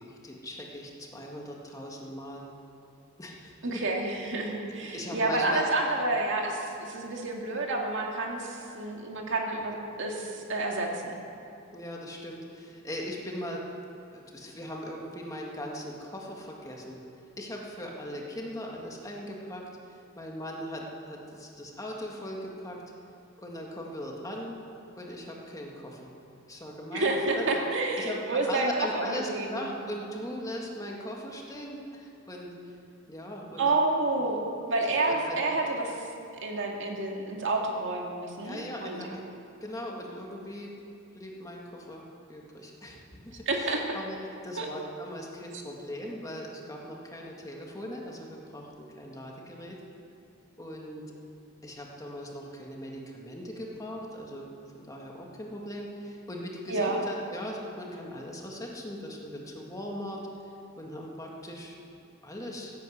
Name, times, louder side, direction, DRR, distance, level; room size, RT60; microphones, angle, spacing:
voice 1, 0.0-2.4 3.2-3.8 4.9-5.6 11.7-13.6 14.1-17.0 17.4-19.6 20.2-22.8 23.4-24.6 25.0-26.1 26.5-27.6 28.0-32.5 33.1-33.9 34.8-35.6 38.4-39.2 39.6-40.7 41.1-44.2 44.4-49.8 50.6-51.0 51.6-54.5 54.7-60.2 60.8-61.7 62.2-62.7, equal, 15° left, -1 dB, 1.8 m, -39 dB
voice 2, 3.6-10.9 26.9-29.6 33.6-34.4 34.7-35.9 36.4-39.0 43.5-43.9 44.6-44.7 56.7-57.0, right 2 dB, 60° right, 0 dB, 2.1 m, -29 dB
16.5 x 9.3 x 8.0 m, 2.6 s
head